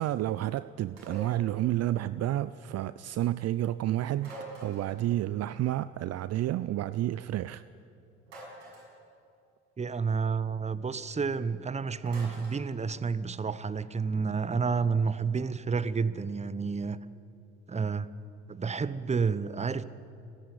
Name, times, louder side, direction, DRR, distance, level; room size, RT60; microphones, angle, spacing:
voice 1, 0.0-4.3 4.6-7.6, right 13 dB, 50° right, 0.5 m, -30 dB
sound 1, 1.0-1.5 4.2-5.0 8.3-9.0 12.1-12.6, right 1 dB, 80° right, 6.6 m, -45 dB
voice 2, 9.8-17.0 17.7-18.1 18.5-19.8, right 5 dB, 20° right, 0.9 m, -30 dB
29.5 x 10.5 x 9.8 m
hypercardioid pair, 60°, 33 cm